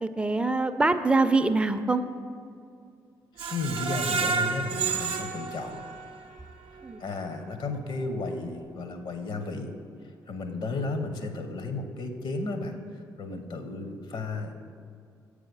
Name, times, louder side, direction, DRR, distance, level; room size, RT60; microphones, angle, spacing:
voice 1, 0.0-2.0 6.8-7.0 13.3-13.4, right 3 dB, 10° right, 8 dB, 0.5 m, -24 dB
Screech, 3.4-6.4 6.8-6.9 7.3-7.4, right 5 dB, 65° right, 0.6 m, -30 dB
voice 2, 3.5-5.8 7.0-9.7 10.3-12.8 13.2-14.5, left 3 dB, 55° left, 7 dB, 0.8 m, -33 dB
7.7 x 4.9 x 5.3 m, 2.3 s
hypercardioid pair, 45°, 10 cm